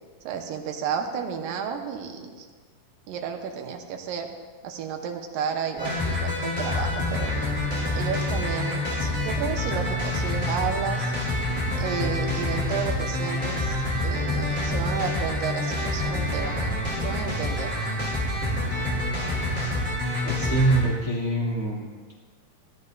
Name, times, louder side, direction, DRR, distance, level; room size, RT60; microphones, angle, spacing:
voice 1, 0.2-2.5 3.1-4.3 4.6-7.3 8.0-11.1 11.7-17.7, right 7 dB, 90° right, 4 dB, 2.7 m, -32 dB
sound 1, 5.8-20.8, left 1 dB, 5° left, 2.8 m, -27 dB
voice 2, 20.2-22.1, right 2 dB, 55° right, -6 dB, 0.7 m, -25 dB
17.0 x 12.5 x 2.6 m, 1.5 s
omnidirectional pair, 3.9 m